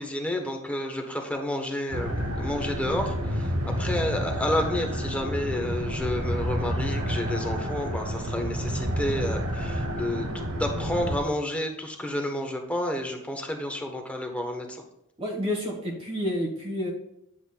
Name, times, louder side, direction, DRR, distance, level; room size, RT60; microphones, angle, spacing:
voice 1, 0.0-3.5 3.8-14.8, left 1 dB, 5° left, 3 dB, 0.9 m, -30 dB
sound 1, 1.9-11.2, equal, 75° right, 1.1 m, -29 dB
voice 2, 15.2-16.9, left 1 dB, 25° right, -2 dB, 1.1 m, -29 dB
9.9 x 7.6 x 2.2 m, 0.83 s
head